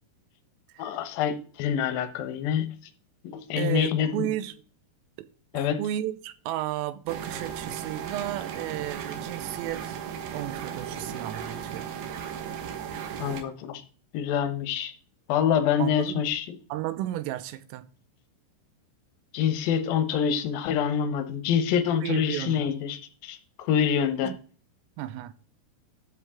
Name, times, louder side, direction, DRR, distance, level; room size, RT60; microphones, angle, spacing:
voice 1, 0.8-2.7 3.2-4.3 5.5-5.8 13.2-13.8 14.1-14.9 15.3-16.6 19.3-24.3, left 8 dB, 80° left, 2.0 m, -26 dB
voice 2, 3.6-4.5 5.2-5.3 5.5-10.0 10.3-11.9 15.8-16.2 16.7-17.9 22.0-22.7 24.2-24.4 25.0-25.3, right 13 dB, 85° right, 3.5 m, -33 dB
sound 1, 7.1-13.4, right 8 dB, 65° right, 2.9 m, -36 dB
12.5 x 8.3 x 3.7 m
omnidirectional pair, 5.9 m